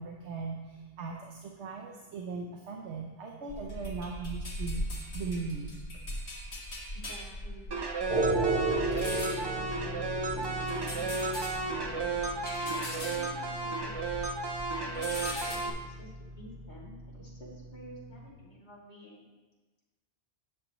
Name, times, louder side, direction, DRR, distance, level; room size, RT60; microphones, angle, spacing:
voice 1, 0.0-5.8, right 4 dB, 80° right, 1 dB, 1.0 m, -39 dB
sound 1, 3.5-14.3 14.6-15.6, left 1 dB, 70° left, 1.9 m, -40 dB
voice 2, 6.9-7.7 8.1-12.1 12.6-14.3 14.8-19.2, left 1 dB, 40° left, -6 dB, 2.5 m, -50 dB
sound 2, 7.7-15.7, right 3 dB, 35° right, 0.4 m, -33 dB
sound 3, 8.1-18.3, right 3 dB, 55° right, 1.2 m, -36 dB
9.7 x 7.1 x 3.0 m, 1.2 s
omnidirectional pair, 1.1 m